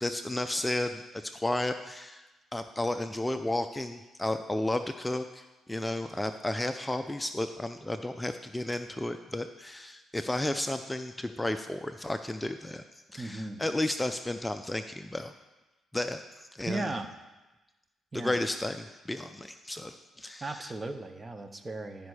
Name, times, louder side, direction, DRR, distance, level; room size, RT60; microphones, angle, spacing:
voice 1, 0.0-2.3 2.5-12.8 13.1-15.3 15.9-16.8 18.1-20.7, left 1 dB, 10° left, 8 dB, 0.4 m, -33 dB
voice 2, 13.2-13.6 16.7-17.1 18.1-18.4 20.4-22.1, right 2 dB, 25° right, 8 dB, 0.8 m, -36 dB
12.0 x 5.3 x 4.8 m, 1.1 s
cardioid pair, 75°, 0 cm